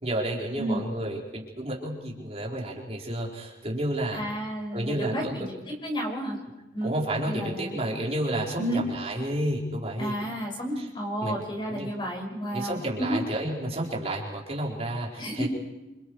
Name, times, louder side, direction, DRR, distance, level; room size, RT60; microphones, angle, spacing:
voice 1, 0.0-4.2 4.7-5.5 6.8-10.1 11.2-11.4 11.6-11.9 12.5-15.5, right 1 dB, 35° right, -2 dB, 4.6 m, -31 dB
voice 2, 4.1-6.4 6.7-6.9 7.2-7.8 8.6-8.8 10.0-13.2 15.2-15.5, equal, 30° left, 1 dB, 6.4 m, -31 dB
28.0 x 28.0 x 4.8 m, 1.0 s
head